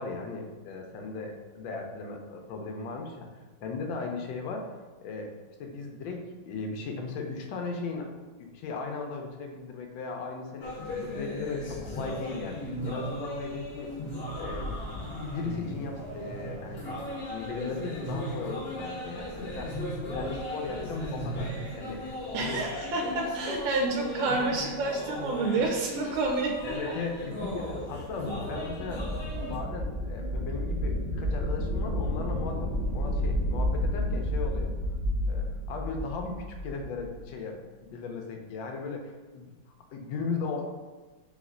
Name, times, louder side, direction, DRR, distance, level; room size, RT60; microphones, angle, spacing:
voice 1, 0.0-3.3 3.6-4.6 5.0-5.3 5.6-8.1 8.4-10.8 11.0-13.9 14.3-14.7 15.0-16.9 17.3-22.6 23.0-23.1 26.6-29.0 29.4-34.7 35.3-39.5 39.9-40.6, left 4 dB, 75° left, 2 dB, 1.3 m, -37 dB
sound 1, 10.6-29.6, left 1 dB, 40° left, 0.9 m, -37 dB
voice 2, 22.3-26.9, right 3 dB, 75° right, 1 dB, 1.3 m, -29 dB
sound 2, 27.1-37.2, left 1 dB, 45° right, 0.6 m, -31 dB
3.5 x 3.1 x 3.8 m, 1.3 s
omnidirectional pair, 2.2 m